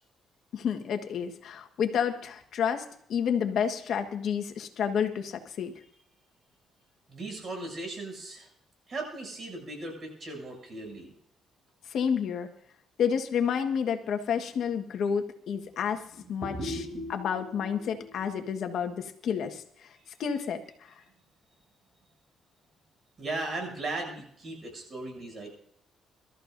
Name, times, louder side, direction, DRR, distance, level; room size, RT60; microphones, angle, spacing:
voice 1, 0.5-5.7 11.9-12.5 13.0-16.0 16.3-16.8 17.1-19.6 20.2-20.6, left 7 dB, 70° left, 6 dB, 1.6 m, -30 dB
voice 2, 7.1-8.5 8.9-11.1 16.1-18.7 23.2-25.5, right 2 dB, 45° right, 2 dB, 7.5 m, -38 dB
24.0 x 13.5 x 2.7 m, 0.67 s
cardioid pair, 90°, 0 cm